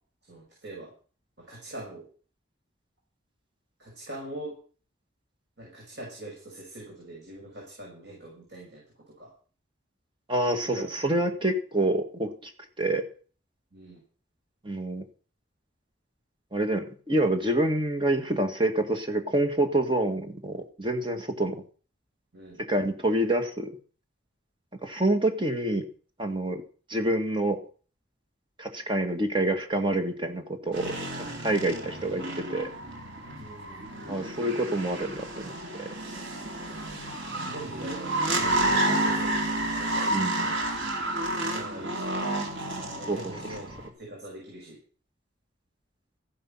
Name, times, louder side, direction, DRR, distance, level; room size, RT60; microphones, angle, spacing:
voice 1, 0.3-0.9 1.4-2.0 3.8-4.5 5.6-8.8 9.2-9.3 10.6-11.2 13.7-14.0 22.3-22.6 33.4-33.9 36.8-40.6 41.5-42.2 43.0-44.8, right 1 dB, 65° right, -3 dB, 6.2 m, -43 dB
voice 2, 10.3-12.5 12.8-13.1 14.6-15.0 16.5-21.6 22.6-23.8 24.8-25.9 26.2-26.6 26.9-27.6 28.6-32.7 34.1-35.5 35.8-35.9 40.1-40.5 43.1-43.3, right 1 dB, 25° right, 6 dB, 1.9 m, -27 dB
sound 1, 30.7-43.9, right 1 dB, 85° right, 3.2 m, -30 dB
14.5 x 10.5 x 5.8 m, 0.40 s
head